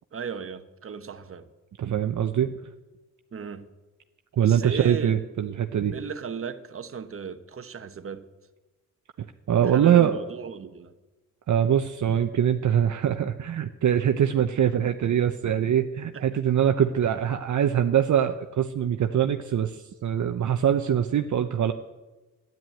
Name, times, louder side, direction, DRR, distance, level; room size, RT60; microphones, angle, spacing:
voice 1, 0.1-1.5 3.3-3.7 4.4-5.2 5.9-8.3 9.7-10.9 16.1-16.2, right 6 dB, 45° right, 1.1 m, -36 dB
voice 2, 1.8-2.5 4.3-6.0 9.5-10.2 11.5-21.7, right 9 dB, 60° right, 0.8 m, -23 dB
12.5 x 10.5 x 9.1 m
cardioid pair, 95°, 32 cm